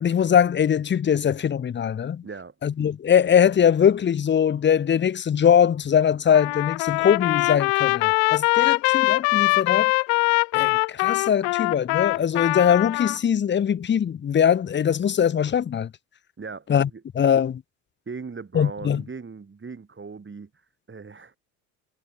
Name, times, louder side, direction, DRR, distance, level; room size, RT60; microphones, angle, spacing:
voice 1, 0.0-2.2 2.6-9.9 10.5-15.9 16.7-16.9 17.1-17.6 18.5-19.0, left 8 dB, 25° left, 0.7 m, -21 dB
voice 2, 2.2-2.5 16.4-16.7 16.9-17.0 18.1-20.5 20.9-21.3, right 4 dB, 25° right, 4.9 m, -38 dB
Trumpet, 6.3-13.2, left 37 dB, 75° left, 1.7 m, -22 dB
hypercardioid pair, 70°, 45 cm